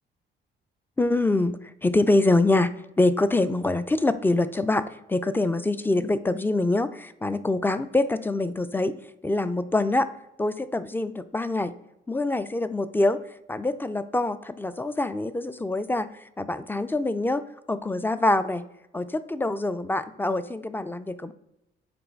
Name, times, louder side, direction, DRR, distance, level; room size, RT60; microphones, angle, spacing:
voice 1, 1.0-4.8 5.1-9.0 9.2-10.1 10.4-11.8 12.1-13.2 13.5-16.1 16.4-18.7 18.9-21.3, left 2 dB, 10° left, 13 dB, 0.3 m, -25 dB
7.8 x 3.1 x 4.5 m, 0.89 s
cardioid pair, 90°, 20 cm